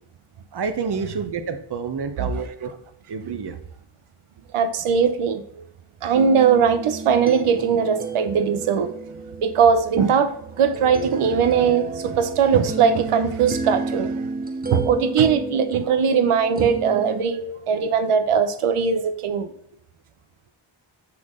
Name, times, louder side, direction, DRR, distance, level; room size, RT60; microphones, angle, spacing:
voice 1, 0.5-2.7 3.1-3.5, right 5 dB, 50° right, 1.0 m, -28 dB
voice 2, 4.5-5.6 6.0-8.9 9.4-14.2 14.7-19.5, right 6 dB, 85° right, 0.9 m, -20 dB
sound 1, 6.1-17.2, right 3 dB, 20° right, 0.9 m, -32 dB
6.1 x 5.9 x 3.7 m
cardioid pair, 60°, 50 cm